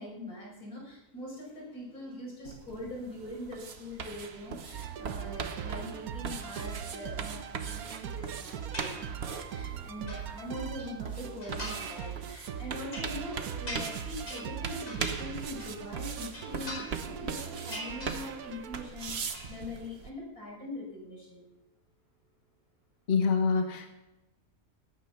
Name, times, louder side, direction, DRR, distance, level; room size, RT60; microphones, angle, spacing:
voice 1, 0.0-21.4, left 1 dB, 85° left, -2 dB, 6.1 m, -42 dB
sound 1, 2.4-20.1, right 6 dB, 50° right, 1.2 m, -41 dB
sound 2, 4.7-18.9, right 9 dB, 85° right, 1.3 m, -41 dB
sound 3, 8.7-9.4 9.8-10.9 11.4-12.0 12.4-15.9 16.2-17.2 17.5-18.6 18.9-19.5, equal, 60° left, 5.5 m, -43 dB
voice 2, 23.1-23.9, left 5 dB, 45° left, 4 dB, 1.4 m, -25 dB
18.0 x 9.4 x 5.7 m, 0.99 s
omnidirectional pair, 1.5 m